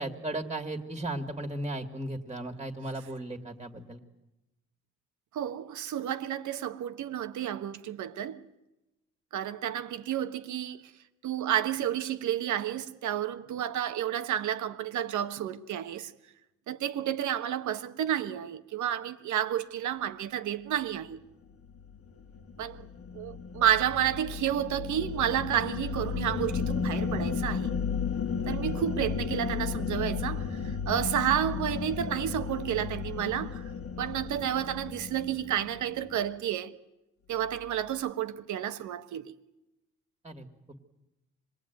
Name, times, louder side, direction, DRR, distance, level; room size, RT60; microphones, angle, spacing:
voice 1, 0.0-4.0 40.2-40.5, right 1 dB, 15° right, 2.3 m, -36 dB
voice 2, 5.3-8.4 9.3-10.8 11.2-16.1 16.7-21.2 22.6-22.8 23.1-27.7 28.5-33.6 34.0-36.7 37.3-39.3, right 10 dB, 75° right, 1.3 m, -31 dB
sound 1, 21.7-36.2, left 6 dB, 50° left, 1.5 m, -34 dB
26.0 x 20.0 x 9.3 m
cardioid pair, 90°, 30 cm